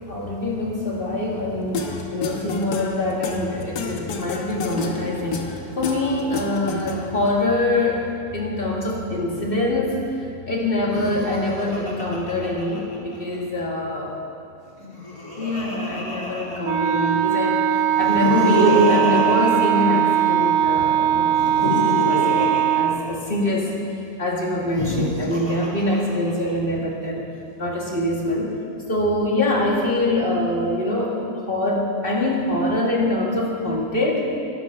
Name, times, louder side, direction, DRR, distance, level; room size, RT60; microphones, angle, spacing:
voice 1, 0.0-14.1 15.4-21.6 21.9-23.7 24.2-27.3 27.6-28.5 28.9-34.3, left 1 dB, 35° left, -2 dB, 1.8 m, -24 dB
sound 1, 1.7-7.3, left 4 dB, 80° left, 1.6 m, -30 dB
Laughter, 10.8-13.4 14.7-17.1 17.9-20.5 21.3-23.7 24.6-26.5, equal, 20° left, 2.3 m, -26 dB
Wind instrument woodwind instrument, 16.6-23.0, right 10 dB, 70° right, 1.1 m, -20 dB
12.0 x 11.5 x 5.7 m, 2.5 s
omnidirectional pair, 1.8 m